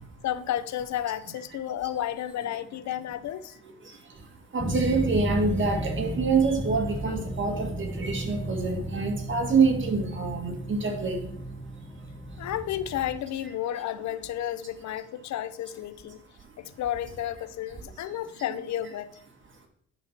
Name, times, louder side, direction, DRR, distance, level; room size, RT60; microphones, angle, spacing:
voice 1, 0.2-3.6 12.4-16.2 16.6-19.2, left 11 dB, 65° left, 14 dB, 0.7 m, -32 dB
voice 2, 4.5-11.3, right 4 dB, 40° right, 3 dB, 2.0 m, -26 dB
sound 1, 4.6-13.2, right 1 dB, 10° left, 1.3 m, -34 dB
11.0 x 4.4 x 5.9 m, 0.68 s
cardioid pair, 90°, 30 cm